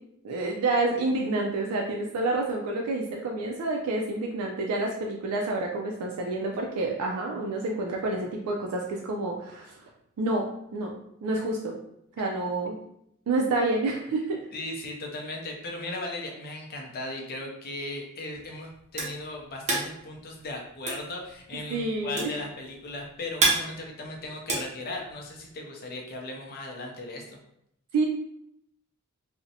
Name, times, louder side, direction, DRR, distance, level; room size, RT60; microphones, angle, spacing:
voice 1, 0.2-9.7 10.2-10.5 10.7-10.9 11.2-11.7 12.2-12.8 13.3-14.5 21.7-22.4 27.9-28.0, right 2 dB, 90° right, 0 dB, 0.3 m, -28 dB
voice 2, 14.5-27.4, left 2 dB, 45° left, 1 dB, 0.5 m, -37 dB
sound 1, 18.3-25.5, right 3 dB, 30° right, 0.5 m, -30 dB
2.5 x 2.0 x 2.6 m, 0.76 s
head